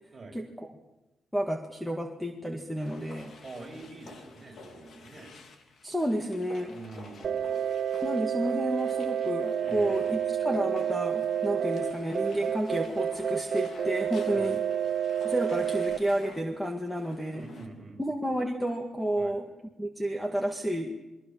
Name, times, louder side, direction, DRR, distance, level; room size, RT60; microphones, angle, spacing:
voice 1, 1.3-3.3 5.8-6.7 8.0-14.6 15.2-17.5 18.0-19.4 19.8-21.0, right 1 dB, ahead, 4 dB, 1.9 m, -31 dB
sound 1, 2.8-17.7, left 4 dB, 55° left, 3.4 m, -50 dB
voice 2, 3.4-5.3 6.7-7.7 9.6-10.1 14.3-14.6 17.3-18.0 19.2-19.3, right 3 dB, 25° right, 0 dB, 6.8 m, -45 dB
sound 2, 7.2-16.0, right 9 dB, 60° right, 1.0 m, -30 dB
28.0 x 23.0 x 7.4 m, 1.0 s
wide cardioid pair, 150°, 0 cm